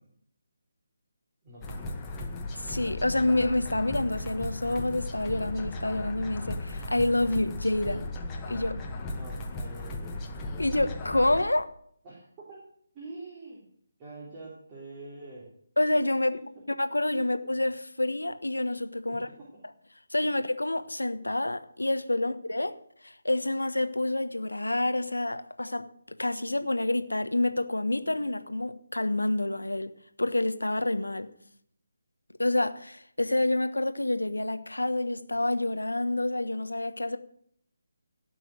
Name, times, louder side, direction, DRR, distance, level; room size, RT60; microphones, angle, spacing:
voice 1, 1.4-2.0 9.0-10.3 12.0-12.6 12.9-13.6 14.0-15.5 19.1-19.5, right 2 dB, 20° right, 3.6 m, -45 dB
sound 1, 1.6-11.4, left 2 dB, 15° left, 1.7 m, -36 dB
voice 2, 2.5-8.1 8.5-8.8 10.6-11.7 15.8-16.4 16.8-19.3 20.1-22.8 23.0-25.9 26.2-29.9 30.2-31.3 32.4-37.2, left 1 dB, 80° left, 1.2 m, -28 dB
17.5 x 6.2 x 7.8 m
figure-of-eight pair, 150°, 0 cm